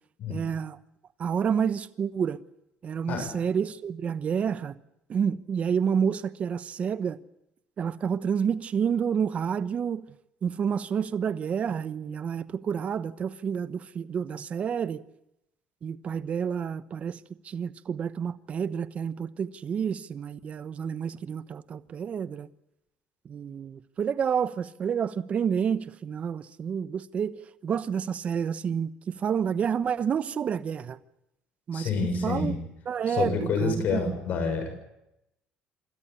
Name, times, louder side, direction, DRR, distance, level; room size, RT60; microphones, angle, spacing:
voice 1, 0.3-0.8 1.2-2.4 2.8-4.8 5.1-7.2 7.8-10.0 10.4-15.0 15.8-17.2 17.4-22.5 23.2-27.4 27.6-31.0 31.7-31.9 32.2-32.5 32.9-34.1, right 7 dB, 45° right, 1.0 m, -29 dB
voice 2, 31.7-32.6 33.1-34.8, left 4 dB, 60° left, 6.9 m, -28 dB
26.5 x 14.0 x 9.9 m
cardioid pair, 100°, 3 cm